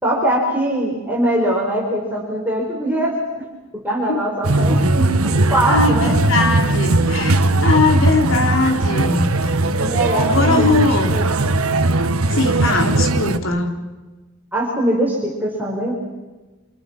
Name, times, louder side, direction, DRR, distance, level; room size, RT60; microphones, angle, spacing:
voice 1, 0.0-3.5 3.7-6.1 9.8-11.2 14.5-15.9, right 1 dB, 10° right, -3 dB, 5.3 m, -22 dB
sound 1, 4.4-13.4, right 2 dB, 75° right, 1.6 m, -18 dB
voice 2, 5.6-9.5 10.1-11.2 12.3-13.7, left 3 dB, 65° left, 3 dB, 3.9 m, -20 dB
29.0 x 27.0 x 6.1 m, 1.2 s
head